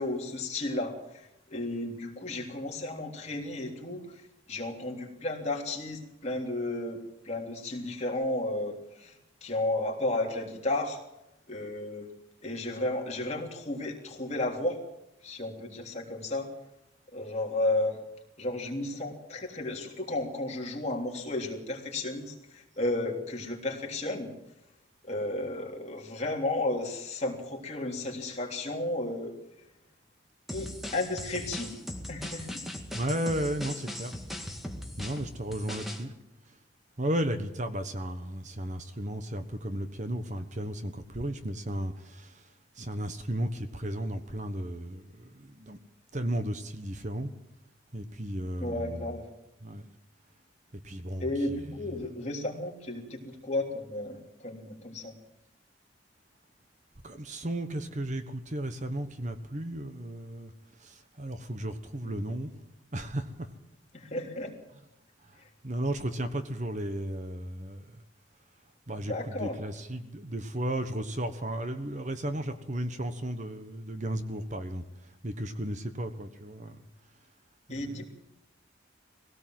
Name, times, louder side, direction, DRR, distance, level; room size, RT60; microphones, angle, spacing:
voice 1, 0.0-4.0 4.5-9.1 9.4-11.0 11.5-12.1 12.4-14.8 15.2-16.5 17.1-18.0 18.4-24.3 25.1-29.3 30.5-31.8 32.1-32.6 48.6-49.2 51.2-55.1 62.2-62.3 63.9-64.5 69.0-69.6 77.7-78.1, left 2 dB, 35° left, 0 dB, 3.3 m, -33 dB
sound 1, 30.5-36.0, left 1 dB, ahead, 1.9 m, -39 dB
voice 2, 32.9-34.1 35.0-36.1 37.0-45.8 46.1-47.3 47.9-49.1 49.6-49.9 50.7-52.0 57.0-60.5 60.8-62.5 62.9-63.5 65.2-65.4 65.6-68.0 68.9-74.8 75.2-76.8 77.7-78.0, right 1 dB, 35° right, 9 dB, 1.2 m, -34 dB
20.5 x 17.5 x 7.7 m, 0.88 s
head